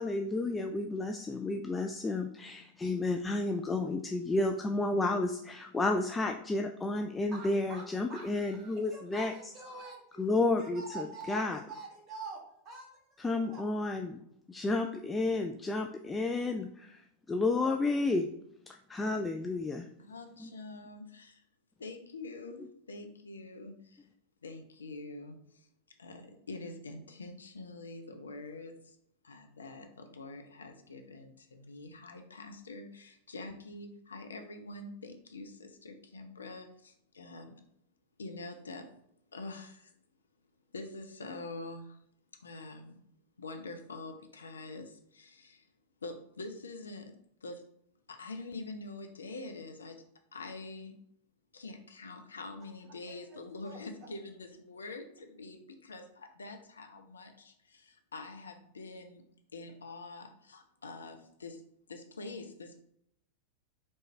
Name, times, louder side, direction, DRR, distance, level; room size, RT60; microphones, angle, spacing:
voice 1, 0.0-9.5 10.2-11.6 13.2-14.2 14.5-18.3 18.7-19.9 20.4-20.5, left 2 dB, 15° left, 3 dB, 0.3 m, -31 dB
voice 2, 7.3-7.8 8.1-10.0 10.6-13.6 53.1-53.2 53.6-53.8, right 3 dB, 30° right, -1 dB, 1.5 m, -45 dB
voice 3, 20.0-21.4 21.8-24.1 24.4-25.7 26.0-29.0 29.2-37.5 38.2-38.9 39.3-39.9 40.7-42.0 42.4-43.0 43.4-45.7 46.0-47.1 47.4-47.6 48.1-50.0 50.3-50.9 51.5-59.2 59.5-61.6 61.9-62.8, left 3 dB, 75° left, 5 dB, 0.6 m, -45 dB
4.2 x 3.2 x 3.3 m, 0.72 s
figure-of-eight pair, 90°, 0 cm